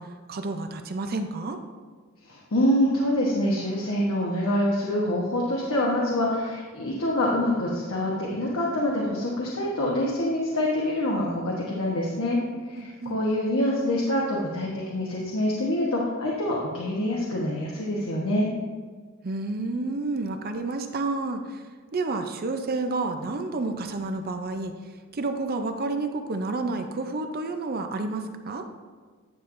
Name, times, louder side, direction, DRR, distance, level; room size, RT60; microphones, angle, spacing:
voice 1, 0.0-1.6 12.8-13.2 19.2-21.6 21.9-24.7 25.1-28.7, right 3 dB, 45° right, 7 dB, 0.6 m, -30 dB
voice 2, 2.2-12.4 12.7-18.5, left 1 dB, 80° left, -4 dB, 1.1 m, -26 dB
9.7 x 7.0 x 2.6 m, 1.5 s
head